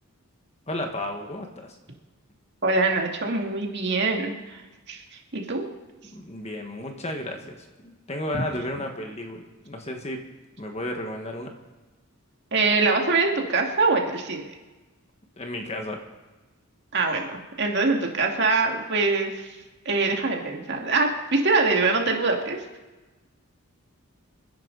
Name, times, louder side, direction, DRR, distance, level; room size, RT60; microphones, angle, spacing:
voice 1, 0.7-1.8 6.1-10.2 10.6-11.5 15.4-16.0, left 1 dB, 30° left, 3 dB, 1.6 m, -33 dB
voice 2, 2.6-4.6 4.9-5.0 5.3-5.7 12.5-14.5 16.9-19.6 19.9-22.6, right 3 dB, 50° right, 1 dB, 2.2 m, -24 dB
27.5 x 10.5 x 4.0 m, 1.2 s
head